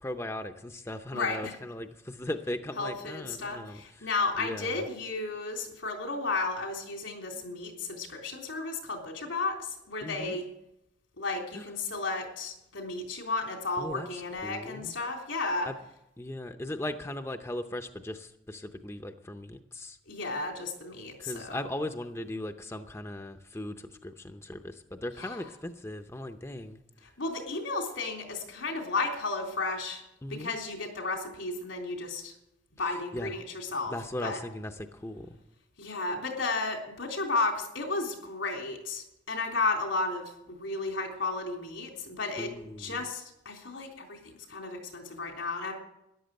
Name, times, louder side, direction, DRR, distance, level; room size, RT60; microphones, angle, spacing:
voice 1, 0.0-4.1 4.4-4.9 10.0-10.4 11.5-11.6 13.8-14.9 15.7-15.8 16.2-20.0 21.2-26.8 30.2-30.5 32.8-33.3 33.9-35.4 42.4-43.1, left 1 dB, 15° left, 6 dB, 0.6 m, -38 dB
voice 2, 1.1-1.5 2.8-10.5 11.2-15.7 20.1-21.6 25.2-25.4 27.2-30.0 30.3-32.3 32.8-33.9 34.2-34.4 35.8-42.5 42.8-45.7, left 3 dB, 85° left, 2 dB, 3.5 m, -33 dB
13.5 x 11.0 x 7.7 m, 0.85 s
head